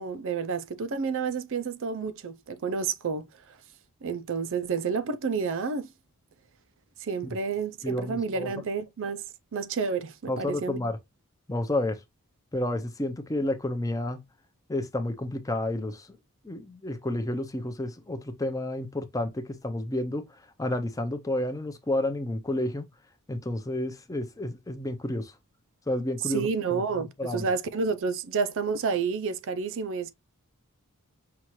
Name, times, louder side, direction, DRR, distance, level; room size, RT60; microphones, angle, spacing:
voice 1, 0.0-3.6 4.0-5.9 7.0-9.3 9.5-10.8 26.2-30.1, right 5 dB, 60° right, 0.5 m, -30 dB
voice 2, 7.8-8.5 10.3-11.0 11.5-12.0 12.5-14.2 14.7-16.1 16.4-20.3 20.6-22.9 23.3-25.3 25.9-26.8 27.2-27.5, left 1 dB, 15° left, 0.5 m, -30 dB
5.7 x 2.4 x 3.0 m
head